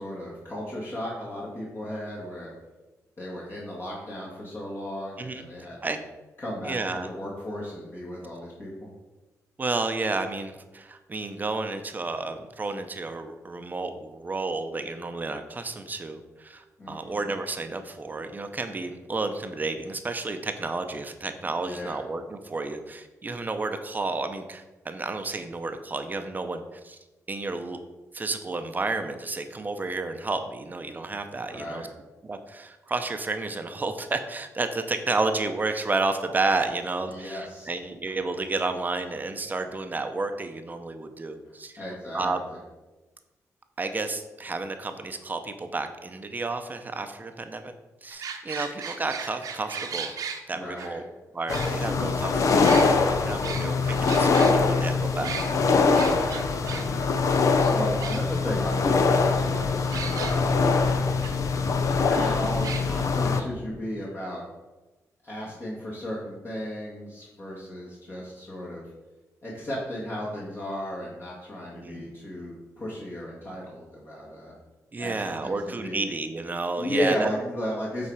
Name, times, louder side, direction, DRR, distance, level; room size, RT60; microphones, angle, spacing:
voice 1, 0.0-2.5 3.2-6.0 6.4-8.9 16.8-17.2 21.6-22.0 31.5-31.9 37.1-37.7 41.8-42.6 50.5-51.0 55.9-57.2 57.5-60.9 61.9-64.4 65.2-68.8 69.4-74.5 75.0-76.0 76.8-78.1, equal, 40° left, -6 dB, 2.0 m, -35 dB
voice 2, 6.6-7.1 9.6-27.0 27.3-27.8 28.1-31.9 32.2-41.7 42.1-42.4 43.8-47.7 48.0-50.2 50.5-51.0 51.3-55.4 71.8-72.1 74.9-77.3, right 3 dB, 30° right, 7 dB, 0.7 m, -31 dB
sound 1, 48.1-50.4 50.8-50.9 51.5-52.2 52.6-54.5 55.2-55.5 56.0-56.8 57.2-57.3 57.5-57.6 58.0-58.6 59.9-60.3 61.2-61.3 61.6-61.7 62.6-62.8, right 6 dB, 85° right, 0.9 m, -35 dB
sound 2, 51.5-63.4, left 4 dB, 60° left, 0.7 m, -23 dB
8.4 x 4.2 x 4.8 m, 1.1 s
cardioid pair, 105°, 6 cm